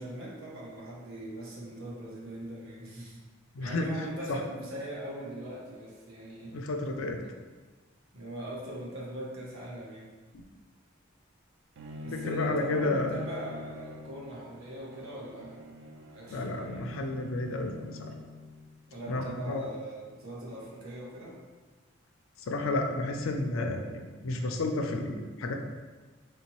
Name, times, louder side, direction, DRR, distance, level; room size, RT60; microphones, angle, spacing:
voice 1, 0.0-3.2 3.6-6.5 7.2-7.3 8.1-10.1 12.0-15.6 16.1-16.9 18.9-21.4, right 1 dB, 85° right, -4 dB, 0.9 m, -41 dB
voice 2, 3.5-3.9 4.3-4.4 6.5-7.2 12.1-13.1 16.3-18.2 19.1-19.6 22.4-25.5, left 2 dB, 75° left, 4 dB, 0.4 m, -31 dB
Bowed string instrument, 11.8-18.8, left 2 dB, 60° right, 0.3 m, -43 dB
3.3 x 2.8 x 3.0 m, 1.3 s
head